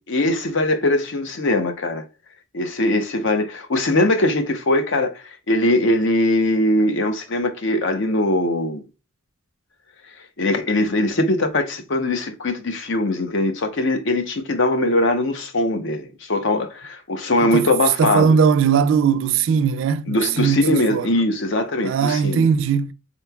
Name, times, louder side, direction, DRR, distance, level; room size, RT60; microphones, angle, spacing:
voice 1, 0.1-2.0 2.5-8.8 10.4-18.4 20.1-22.5, left 1 dB, 65° left, 0.7 m, -21 dB
voice 2, 18.0-21.2 21.8-22.9, right 6 dB, 65° right, 0.3 m, -19 dB
3.8 x 3.0 x 2.2 m
head